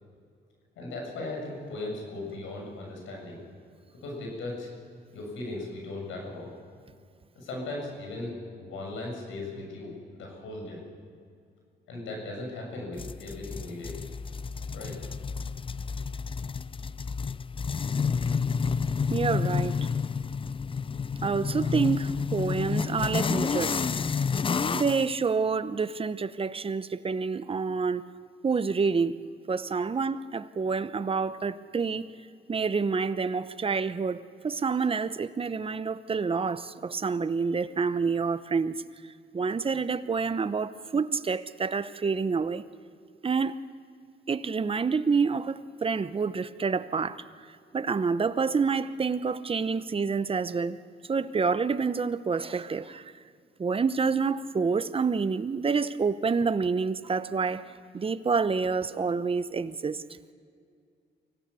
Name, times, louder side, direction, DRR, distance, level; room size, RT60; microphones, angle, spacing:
voice 1, 0.8-3.4 4.0-4.7 5.1-6.5 7.4-10.8 11.9-14.0 14.7-15.0, left 2 dB, 80° left, 0 dB, 7.1 m, -37 dB
sound 1, 13.0-25.1, left 5 dB, 25° left, 0.5 m, -30 dB
voice 2, 19.1-19.8 21.2-23.8 24.7-28.0 28.4-29.2 29.5-32.1 32.5-38.8 39.3-42.6 43.2-43.6 44.3-47.2 47.7-50.8 51.1-53.1 53.6-60.0, right 5 dB, 30° right, 13 dB, 0.9 m, -28 dB
25.0 x 16.5 x 7.0 m, 2.3 s
cardioid pair, 90°, 20 cm